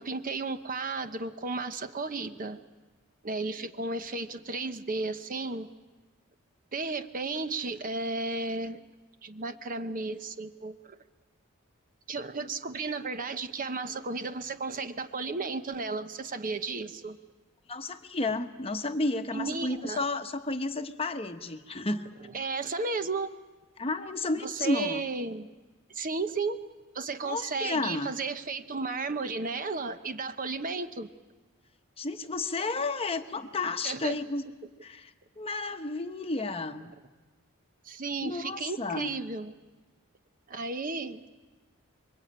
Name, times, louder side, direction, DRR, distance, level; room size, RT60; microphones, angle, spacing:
voice 1, 0.0-2.6 3.2-5.7 6.7-8.8 9.2-11.0 12.1-17.2 19.3-20.0 22.3-23.3 24.4-25.5 25.9-26.6 26.9-31.1 33.8-34.2 37.8-39.5 40.5-41.3, right 3 dB, 40° right, 9 dB, 1.0 m, -34 dB
voice 2, 17.7-22.1 23.8-25.0 27.2-28.1 32.0-34.4 34.8-36.9 38.2-39.2, left 2 dB, 25° left, 7 dB, 1.0 m, -32 dB
26.5 x 23.0 x 8.8 m, 1.3 s
head